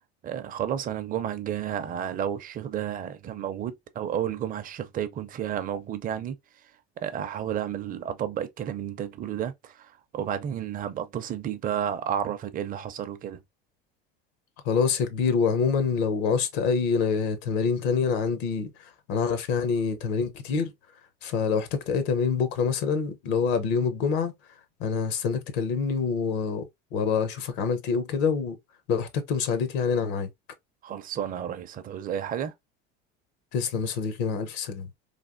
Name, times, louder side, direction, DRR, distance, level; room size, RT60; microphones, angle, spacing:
voice 1, 0.2-13.4 30.8-32.5, right 9 dB, 30° right, 0.5 m, -32 dB
voice 2, 14.6-20.7 21.2-24.3 24.8-26.7 26.9-28.6 28.9-30.3 33.5-34.9, left 5 dB, 70° left, 0.8 m, -26 dB
3.3 x 2.3 x 2.5 m
supercardioid pair, 110°, 30 cm